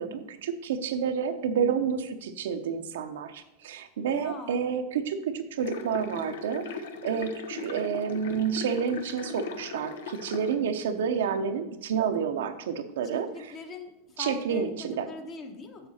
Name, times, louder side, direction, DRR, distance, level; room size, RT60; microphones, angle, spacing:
voice 1, 0.0-13.3 14.2-15.1, right 7 dB, 80° right, 7 dB, 0.7 m, -29 dB
voice 2, 4.1-4.6 13.1-15.9, left 3 dB, 30° left, 5 dB, 1.1 m, -41 dB
sound 1, 5.6-10.5, left 5 dB, 80° left, 0.8 m, -39 dB
6.7 x 6.6 x 4.2 m, 0.97 s
supercardioid pair, 120°, 0 cm